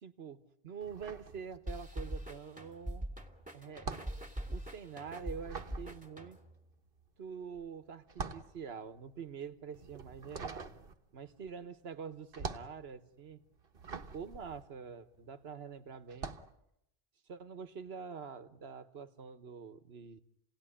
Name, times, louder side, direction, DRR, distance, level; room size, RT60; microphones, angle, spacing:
voice 1, 0.0-3.1 3.5-3.9 4.5-6.4 7.2-10.7 11.1-13.4 14.1-16.3 17.3-20.2, right 6 dB, 80° right, 11 dB, 1.4 m, -46 dB
sound 1, 0.8-2.0 2.3-15.5 16.0-16.6, right 5 dB, 65° right, 1.3 m, -45 dB
sound 2, 1.7-6.6, right 1 dB, 10° right, 2.0 m, -43 dB
29.0 x 18.0 x 9.9 m, 0.84 s
omnidirectional pair, 1.0 m